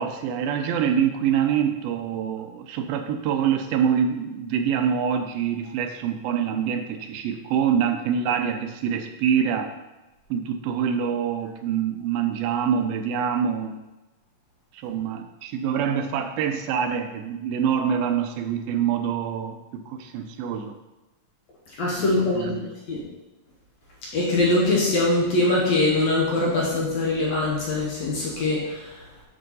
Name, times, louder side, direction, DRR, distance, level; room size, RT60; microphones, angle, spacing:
voice 1, 0.0-9.7 10.3-13.8 14.7-20.7 22.4-22.7, right 8 dB, 80° right, 6 dB, 2.3 m, -25 dB
voice 2, 21.8-22.5 22.9-23.0 24.1-29.0, left 2 dB, 60° left, -5 dB, 2.1 m, -22 dB
8.7 x 4.5 x 4.1 m, 1.1 s
omnidirectional pair, 4.2 m